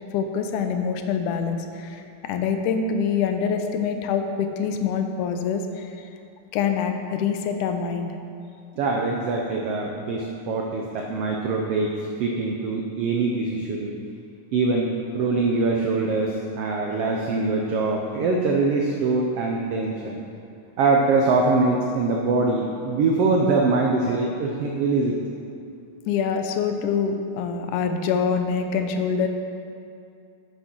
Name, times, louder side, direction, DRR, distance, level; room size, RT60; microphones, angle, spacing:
voice 1, 0.1-6.1 6.5-8.1 26.1-29.3, left 6 dB, 80° left, 6 dB, 2.1 m, -25 dB
voice 2, 8.8-14.0 14.5-20.2 20.8-25.2, right 3 dB, 80° right, 0 dB, 1.3 m, -23 dB
8.1 x 8.1 x 6.1 m, 2.5 s
omnidirectional pair, 3.7 m